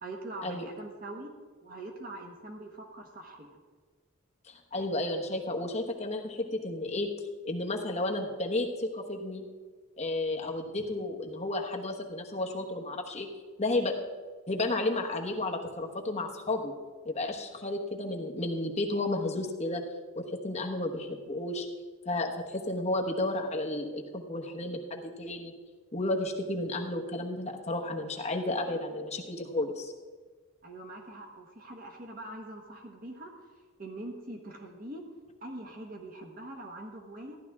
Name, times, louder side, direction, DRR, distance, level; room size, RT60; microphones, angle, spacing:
voice 1, 0.0-1.3 1.6-3.6 30.6-35.0 35.4-37.4, right 1 dB, 40° right, 2 dB, 1.2 m, -43 dB
voice 2, 4.5-7.1 7.4-9.5 10.0-13.3 13.6-14.0 14.5-16.7 17.0-19.8 20.1-21.6 22.0-25.5 25.9-29.9, left 2 dB, 30° left, 1 dB, 1.1 m, -32 dB
14.5 x 11.0 x 3.6 m, 1.5 s
head